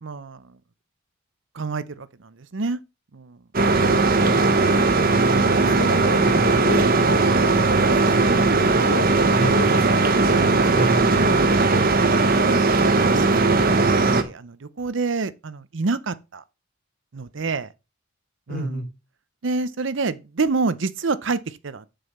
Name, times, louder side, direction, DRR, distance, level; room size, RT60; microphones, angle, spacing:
voice 1, 0.0-0.4 1.5-2.8 3.1-3.4 12.3-13.8 14.1-16.4 17.1-17.7 18.5-18.8 19.4-21.9, right 4 dB, 65° right, 0.6 m, -28 dB
sound 1, 3.5-14.2, right 3 dB, 45° right, 1.1 m, -18 dB
voice 2, 4.2-6.8 8.8-10.5 10.7-11.4 18.5-18.9, equal, 45° left, 3.2 m, -32 dB
6.9 x 5.4 x 7.1 m
head